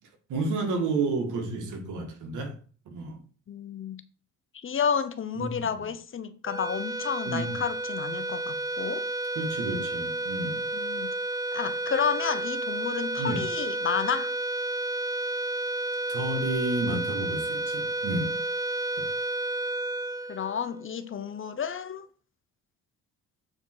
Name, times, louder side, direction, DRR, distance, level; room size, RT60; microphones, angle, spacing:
voice 1, 0.3-2.6 2.9-3.2 5.4-5.7 7.3-7.6 9.4-10.7 13.2-13.4 16.1-18.4, right 2 dB, 80° right, 2.2 m, -31 dB
voice 2, 3.5-4.0 4.6-9.1 10.7-11.1 11.5-14.3 20.3-22.1, left 7 dB, 45° left, 0.9 m, -31 dB
sound 1, 6.4-21.0, right 2 dB, 15° right, 0.4 m, -31 dB
7.8 x 4.4 x 4.6 m
cardioid pair, 90°, 30 cm